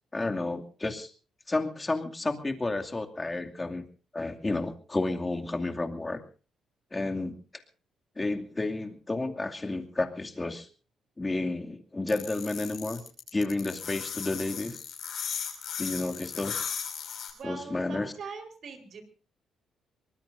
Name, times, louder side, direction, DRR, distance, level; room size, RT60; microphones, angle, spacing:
voice 1, 0.1-1.1 1.5-3.8 4.1-6.2 6.9-7.3 8.2-10.7 11.2-13.0 13.3-14.8 15.8-16.6 17.4-18.1, left 2 dB, 20° left, 4 dB, 2.5 m, -31 dB
sound 1, 12.1-17.3, left 7 dB, 65° left, 5.9 m, -36 dB
voice 2, 17.3-19.0, right 5 dB, 60° right, 6 dB, 4.3 m, -42 dB
24.5 x 20.0 x 2.7 m, 0.37 s
cardioid pair, 90°, 0 cm